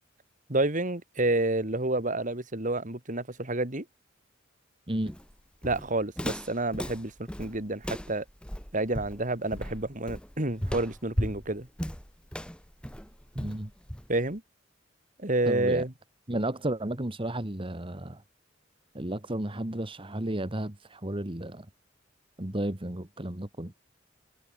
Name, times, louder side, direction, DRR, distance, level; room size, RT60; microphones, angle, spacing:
voice 1, 0.5-3.8 5.6-8.2 8.7-11.7 14.1-14.4 15.2-15.9, right 2 dB, 45° right, 3.1 m, -29 dB
Walk footsteps, 5.1-14.3, equal, 5° left, 2.1 m, -36 dB
voice 2, 13.4-13.7 15.5-15.8 16.3-18.2 18.9-21.7 22.4-23.7, right 1 dB, 30° right, 1.7 m, -33 dB
head